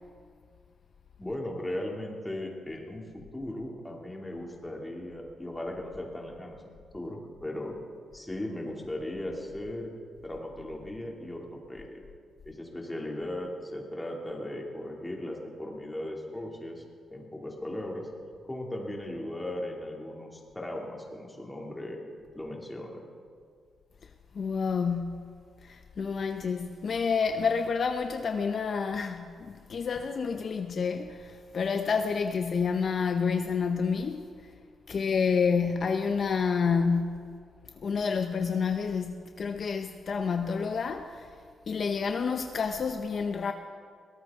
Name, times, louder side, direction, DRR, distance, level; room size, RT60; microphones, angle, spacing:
voice 1, 1.2-6.6 6.9-7.8 8.1-9.9 10.2-12.0 12.4-16.8 17.1-18.1 18.4-22.0 22.3-23.0, left 1 dB, 10° left, 2.7 m, -37 dB
voice 2, 24.3-25.3 25.6-34.3 34.9-37.4 37.8-41.3 41.7-43.5, left 5 dB, 50° left, 0.7 m, -29 dB
22.0 x 17.5 x 3.7 m
cardioid pair, 125°, 0 cm